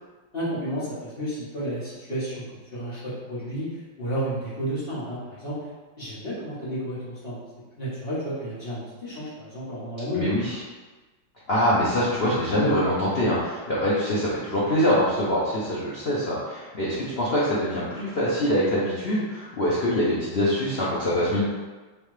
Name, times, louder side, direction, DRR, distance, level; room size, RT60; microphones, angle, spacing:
voice 1, 0.3-2.4 2.7-5.6 6.0-7.4 7.8-10.3, equal, 30° left, -10 dB, 1.5 m, -31 dB
voice 2, 10.1-10.6 11.5-21.4, equal, 85° left, -8 dB, 0.5 m, -24 dB
3.4 x 3.2 x 3.2 m, 1.3 s
omnidirectional pair, 2.1 m